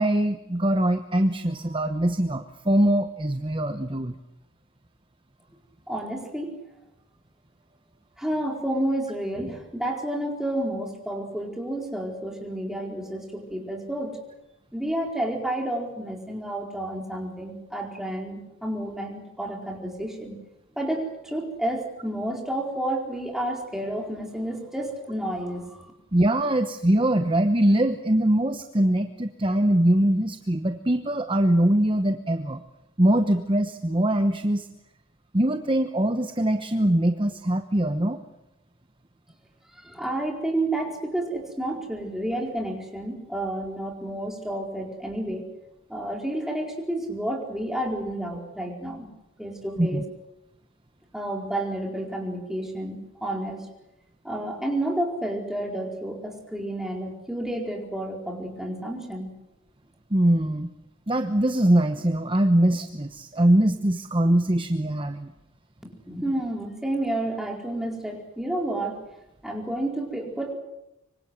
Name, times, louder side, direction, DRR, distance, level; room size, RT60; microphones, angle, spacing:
voice 1, 0.0-4.1 26.1-32.6 33.0-34.7 35.3-38.2 49.8-50.0 60.1-60.7 61.1-65.3, right 1 dB, 25° right, 8 dB, 1.0 m, -22 dB
voice 2, 5.9-6.6 8.2-14.2 14.7-20.4 20.8-25.9 39.8-45.5 45.9-49.1 49.4-50.0 51.1-53.7 54.2-59.3 65.8-69.0 69.4-70.6, right 1 dB, ahead, 1 dB, 4.4 m, -30 dB
25.5 x 24.5 x 7.9 m, 0.88 s
head